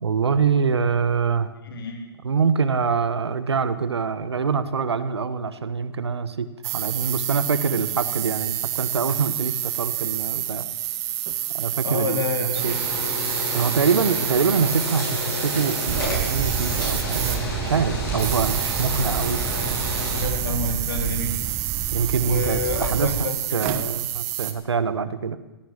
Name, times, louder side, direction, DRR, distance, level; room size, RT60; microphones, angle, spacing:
voice 1, 0.0-1.5 2.2-10.6 11.5-12.8 13.5-19.4 21.9-25.4, right 5 dB, 80° right, 13 dB, 1.3 m, -25 dB
voice 2, 1.6-2.1 11.8-12.6 20.1-21.4 22.3-23.9, left 3 dB, 60° left, 2 dB, 4.0 m, -28 dB
sound 1, 6.6-17.7 18.1-24.5, right 14 dB, 35° right, 1.5 m, -29 dB
sound 2, 12.5-20.2, left 2 dB, 20° left, 7.2 m, -30 dB
sound 3, 15.9-23.3, right 10 dB, 20° right, 0.9 m, -30 dB
16.5 x 9.4 x 8.9 m, 1.0 s
hypercardioid pair, 135°, 14 cm